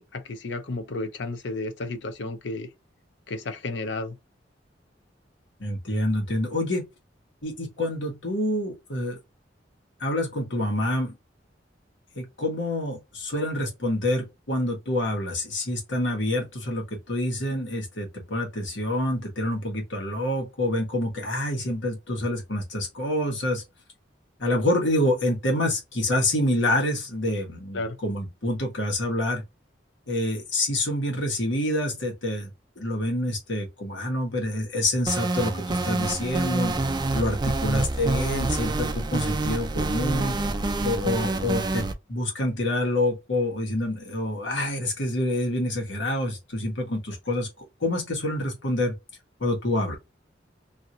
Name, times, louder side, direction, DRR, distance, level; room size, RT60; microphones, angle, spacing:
voice 1, 0.0-2.7 3.3-4.2 27.7-28.0, left 2 dB, 70° left, 0.6 m, -32 dB
voice 2, 5.6-6.8 7.4-9.2 10.0-11.1 12.1-23.6 24.4-29.4 30.1-32.5 32.8-40.4 40.8-47.5 47.8-48.9 49.4-50.0, left 1 dB, 90° left, 1.4 m, -27 dB
sound 1, 35.1-41.9, right 2 dB, 25° right, 0.4 m, -27 dB
2.9 x 2.8 x 2.5 m
head